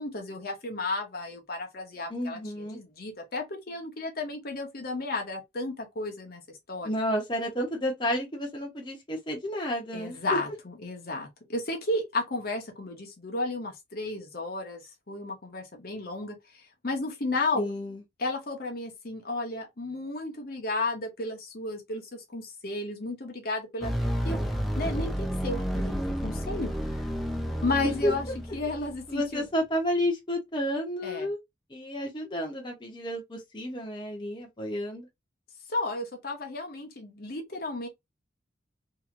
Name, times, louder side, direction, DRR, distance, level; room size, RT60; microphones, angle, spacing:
voice 1, 0.0-2.4 2.7-6.4 6.7-6.9 9.9-14.8 15.1-17.7 18.2-23.9 24.2-24.4 24.7-26.7 27.6-28.3 28.5-29.5 31.0-31.3 35.7-37.9, left 2 dB, 50° left, 0.9 m, -33 dB
voice 2, 2.1-2.8 6.8-10.4 17.6-18.0 27.8-28.1 29.1-31.4 31.7-35.1, equal, 25° left, 0.8 m, -31 dB
sound 1, 23.8-29.1, equal, ahead, 0.5 m, -31 dB
2.9 x 2.7 x 2.4 m
head